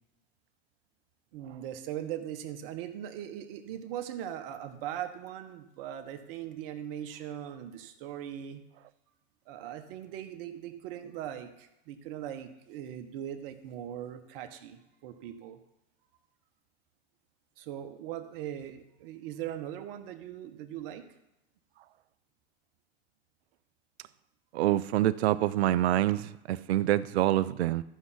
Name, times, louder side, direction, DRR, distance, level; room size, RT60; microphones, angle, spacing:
voice 1, 1.3-8.7 9.5-15.6 17.6-21.1, right 11 dB, 65° right, 1.4 m, -40 dB
voice 2, 24.5-26.2 26.5-27.8, right 13 dB, 85° right, 0.6 m, -26 dB
13.5 x 5.6 x 5.9 m
hypercardioid pair, 105°, 31 cm